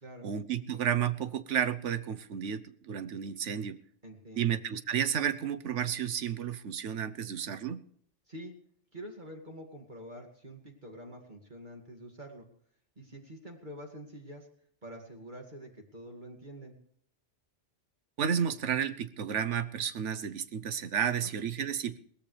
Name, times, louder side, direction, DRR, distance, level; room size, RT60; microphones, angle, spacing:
voice 1, 0.2-3.8 4.4-7.8 18.2-22.0, right 8 dB, 85° right, 13 dB, 1.2 m, -32 dB
voice 2, 4.0-4.6 8.3-8.5 8.9-12.5 13.0-14.5 14.8-16.8, equal, 40° right, 1 dB, 2.4 m, -46 dB
21.5 x 17.5 x 3.3 m, 0.62 s
omnidirectional pair, 1.2 m